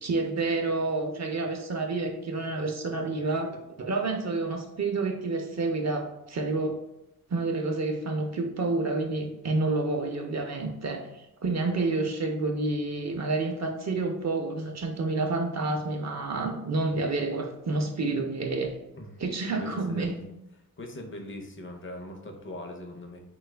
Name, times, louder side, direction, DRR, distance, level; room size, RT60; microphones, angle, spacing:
voice 1, 0.0-3.5 3.8-6.8 7.3-18.8 19.2-20.2, right 3 dB, 50° right, 3 dB, 0.6 m, -29 dB
voice 2, 19.5-20.2 20.8-23.2, left 1 dB, 35° left, 4 dB, 0.6 m, -41 dB
3.2 x 2.3 x 3.2 m, 0.86 s
cardioid pair, 70°, 35 cm